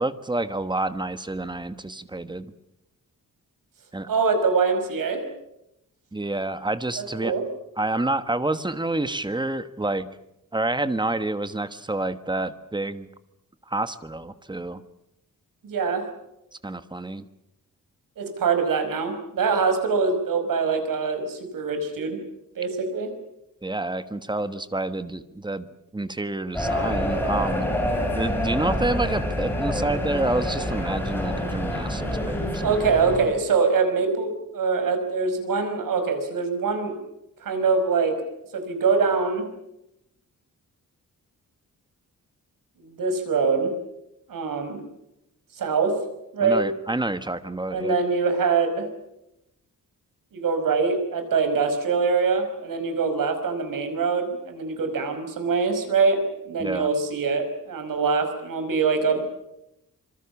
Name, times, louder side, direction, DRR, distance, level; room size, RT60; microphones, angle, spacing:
voice 1, 0.0-2.5 3.9-4.1 6.1-7.3 7.8-10.1 10.5-13.1 13.7-14.8 16.6-17.3 23.6-25.7 25.9-27.7 28.1-32.8 46.4-47.9 56.6-56.9, right 2 dB, 15° right, 11 dB, 1.3 m, -28 dB
voice 2, 4.1-5.2 7.0-7.4 15.6-16.1 18.2-22.2 22.6-23.1 32.6-36.9 37.4-38.2 38.5-39.5 42.8-43.7 44.3-44.8 45.6-46.0 46.3-46.6 47.7-48.9 50.3-59.2, right 4 dB, 80° right, 7 dB, 5.4 m, -24 dB
sound 1, 26.5-33.2, left 1 dB, 5° left, 7.2 m, -27 dB
26.0 x 24.0 x 7.2 m, 0.84 s
wide cardioid pair, 130°, 33 cm